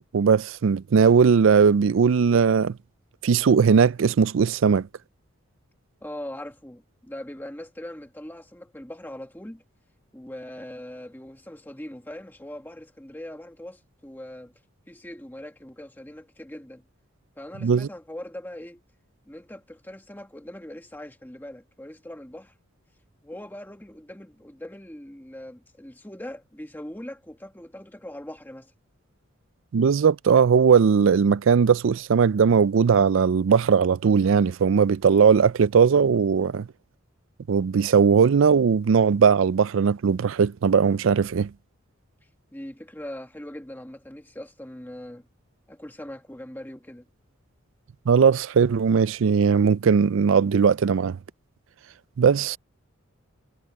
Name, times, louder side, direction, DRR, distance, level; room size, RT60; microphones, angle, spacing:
voice 1, 0.1-2.8 3.2-4.9 17.6-17.9 29.7-36.7 37.5-41.5 48.1-51.2 52.2-52.6, right 6 dB, 65° right, 0.4 m, -19 dB
voice 2, 6.0-9.6 10.1-14.5 14.9-16.8 17.4-18.8 19.2-22.5 23.2-28.7 42.5-45.3 45.7-47.1, left 1 dB, 10° left, 1.4 m, -41 dB
head